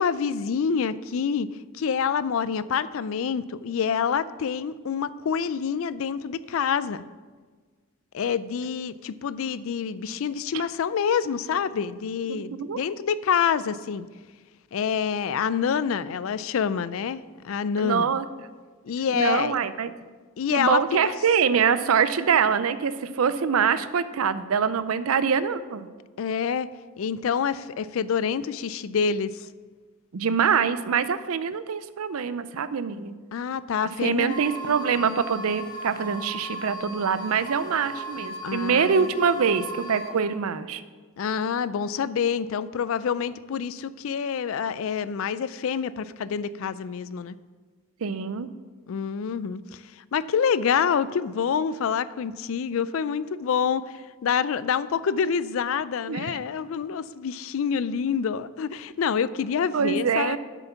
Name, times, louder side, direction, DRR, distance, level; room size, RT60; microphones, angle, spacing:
voice 1, 0.0-1.5 1.8-7.0 8.1-14.0 14.7-18.1 18.8-19.6 20.4-20.8 26.2-26.7 27.0-29.5 33.3-34.4 38.4-39.1 41.2-47.4 48.9-49.6 50.1-60.4, left 7 dB, 70° left, 16 dB, 0.4 m, -27 dB
voice 2, 12.3-12.8 17.8-18.3 19.1-19.9 20.5-25.9 30.1-33.1 34.0-40.8 48.0-48.5 56.1-56.4 59.7-60.4, right 6 dB, 80° right, 13 dB, 0.5 m, -24 dB
sound 1, 34.3-40.1, right 1 dB, 20° left, 0.9 m, -37 dB
8.1 x 7.0 x 5.8 m, 1.4 s
head